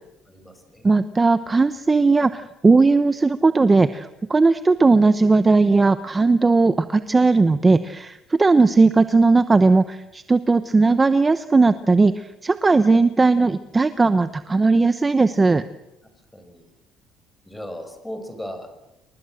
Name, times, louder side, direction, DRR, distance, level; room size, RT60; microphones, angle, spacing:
voice 1, 0.3-0.9 16.3-16.7 17.4-18.7, equal, 5° left, 7 dB, 6.0 m, -36 dB
voice 2, 0.8-15.6, right 3 dB, 20° right, 12 dB, 0.9 m, -17 dB
29.0 x 23.5 x 7.8 m, 0.93 s
cardioid pair, 135°, 0 cm